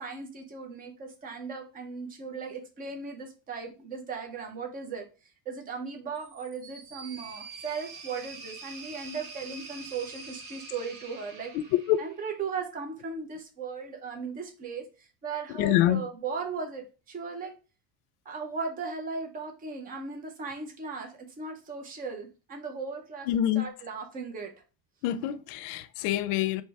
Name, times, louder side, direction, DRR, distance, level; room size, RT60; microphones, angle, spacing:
voice 1, 0.0-5.1 5.5-11.5 12.0-17.5 18.3-23.3 23.6-24.5, right 5 dB, 20° right, 0.6 m, -37 dB
sound 1, 6.2-12.4, right 4 dB, 70° right, 1.6 m, -45 dB
voice 2, 11.5-12.0 15.5-16.1 23.3-23.7 25.0-26.6, left 12 dB, 80° left, 0.6 m, -26 dB
3.2 x 3.1 x 4.6 m
cardioid pair, 165°, 46 cm